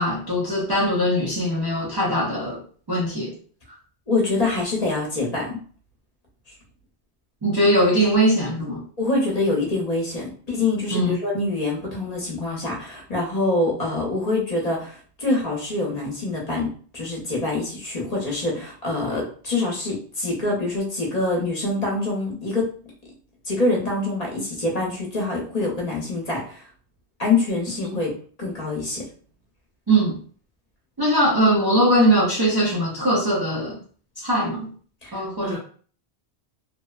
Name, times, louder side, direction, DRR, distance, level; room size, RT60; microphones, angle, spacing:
voice 1, 0.0-2.6 2.9-3.3 7.4-8.8 10.9-11.2 27.8-28.0 29.9-30.2 31.0-33.8 34.2-34.7 35.1-35.6, right 1 dB, 40° right, -4 dB, 0.3 m, -21 dB
voice 2, 4.1-5.6 9.0-22.7 23.5-26.6 27.2-28.1 28.4-29.1 35.0-35.6, left 2 dB, 45° left, -3 dB, 0.7 m, -25 dB
2.8 x 2.0 x 2.3 m, 0.44 s
omnidirectional pair, 1.1 m